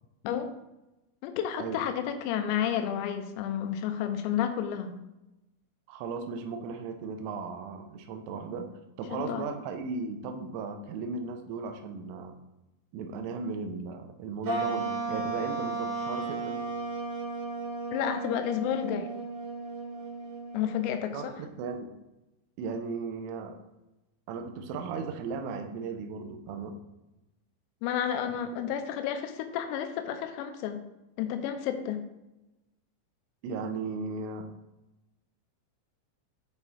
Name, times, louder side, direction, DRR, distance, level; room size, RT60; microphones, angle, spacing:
voice 1, 1.2-5.0 9.1-9.5 17.9-19.1 20.5-21.3 27.8-30.8 31.2-32.0, left 9 dB, 90° left, 7 dB, 3.4 m, -31 dB
voice 2, 5.9-8.7 9.0-12.4 12.9-16.6 21.1-21.9 22.6-23.6 24.3-26.7 33.4-34.5, right 4 dB, 85° right, 5 dB, 3.0 m, -36 dB
sound 1, 14.4-21.1, right 3 dB, 60° right, 1.7 m, -34 dB
9.1 x 3.5 x 4.1 m, 0.96 s
omnidirectional pair, 6.0 m